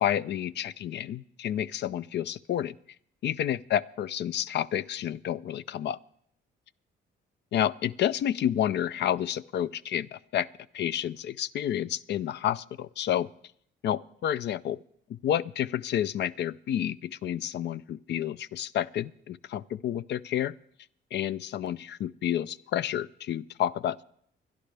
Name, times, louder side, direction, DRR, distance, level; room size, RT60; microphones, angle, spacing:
voice 1, 0.0-2.8 3.2-6.0 7.5-10.5 10.7-13.3 13.8-14.8 15.1-20.5 21.1-24.0, left 10 dB, 60° left, 18 dB, 0.4 m, -30 dB
25.0 x 10.5 x 3.3 m, 0.68 s
cardioid pair, 90°, 20 cm